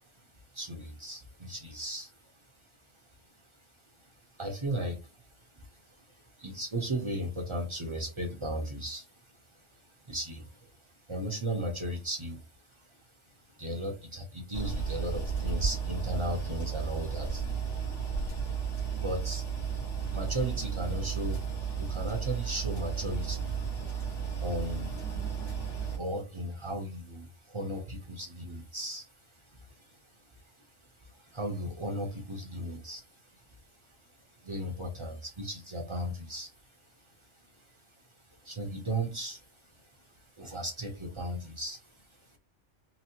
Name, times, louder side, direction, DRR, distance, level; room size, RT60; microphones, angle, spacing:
voice 1, 0.5-2.1 4.4-5.0 6.4-9.0 10.1-10.5 11.1-12.4 13.6-17.4 18.9-19.4 20.1-21.4 21.8-23.5 24.4-24.9 26.0-29.0 31.3-33.0 34.4-36.5 38.4-39.4 40.4-41.8, right 1 dB, 30° right, 2 dB, 0.6 m, -35 dB
sound 1, 14.5-26.0, right 6 dB, 75° left, 1.9 m, -33 dB
4.0 x 2.0 x 2.8 m, 0.29 s
omnidirectional pair, 1.3 m